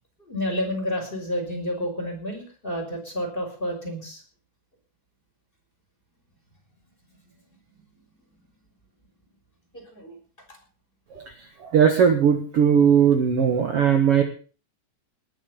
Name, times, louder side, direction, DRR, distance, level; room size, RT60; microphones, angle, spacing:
voice 1, 0.2-4.2 9.7-10.2, equal, 10° left, 3 dB, 5.7 m, -30 dB
voice 2, 11.7-14.2, right 7 dB, 60° right, 5 dB, 1.5 m, -18 dB
21.0 x 8.1 x 7.1 m, 0.39 s
omnidirectional pair, 5.1 m